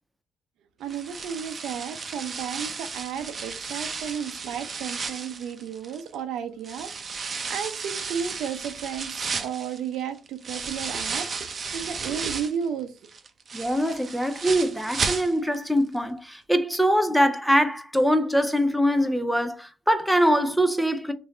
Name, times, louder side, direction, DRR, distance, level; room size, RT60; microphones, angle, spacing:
voice 1, 0.8-6.9 7.2-12.9, right 8 dB, 85° right, 0.6 m, -33 dB
sound 1, 0.9-6.2 6.6-12.6 13.0-15.7 16.0-16.1 16.5-16.6, right 5 dB, 45° right, 0.6 m, -34 dB
voice 2, 13.5-21.1, equal, ahead, 0.5 m, -23 dB
3.1 x 2.7 x 3.8 m
cardioid pair, 90°, 0 cm